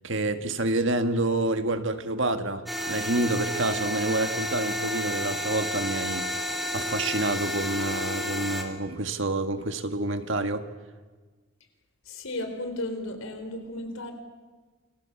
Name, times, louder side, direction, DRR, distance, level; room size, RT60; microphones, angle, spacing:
voice 1, 0.0-10.6, right 2 dB, 60° right, 7 dB, 1.9 m, -28 dB
sound 1, 2.7-8.6, equal, ahead, 3.3 m, -31 dB
voice 2, 12.0-14.1, left 1 dB, 75° left, 6 dB, 4.3 m, -34 dB
29.0 x 23.5 x 7.2 m, 1.3 s
head